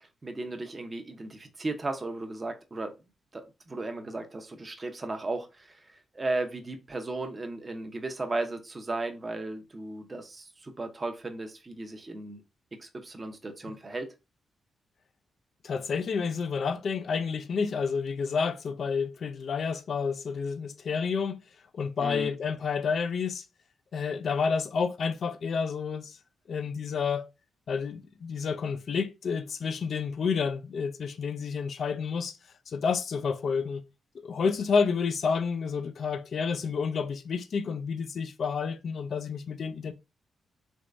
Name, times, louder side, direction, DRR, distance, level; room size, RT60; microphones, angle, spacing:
voice 1, 0.0-2.9 3.3-12.4 12.8-14.1 22.0-22.3, right 2 dB, 35° right, 0.7 m, -35 dB
voice 2, 15.6-21.4 21.7-23.4 23.9-26.2 26.5-27.2 27.7-32.4 32.7-33.8 34.1-39.9, left 5 dB, 65° left, 0.5 m, -30 dB
3.5 x 3.1 x 2.4 m
supercardioid pair, 55°, 0 cm